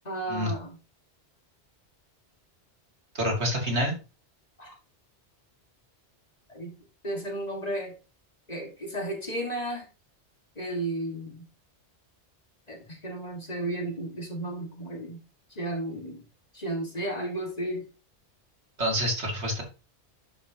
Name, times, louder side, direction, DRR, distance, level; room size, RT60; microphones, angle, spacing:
voice 1, 0.0-0.8 4.6-4.7 6.5-6.8 7.0-7.9 8.5-9.9 10.6-11.5 12.7-15.2 15.5-16.2 16.5-17.9, right 1 dB, 35° left, 1 dB, 2.0 m, -33 dB
voice 2, 3.1-4.0 18.8-19.6, equal, 75° right, 0 dB, 2.8 m, -27 dB
11.5 x 5.1 x 2.9 m, 0.31 s
omnidirectional pair, 1.1 m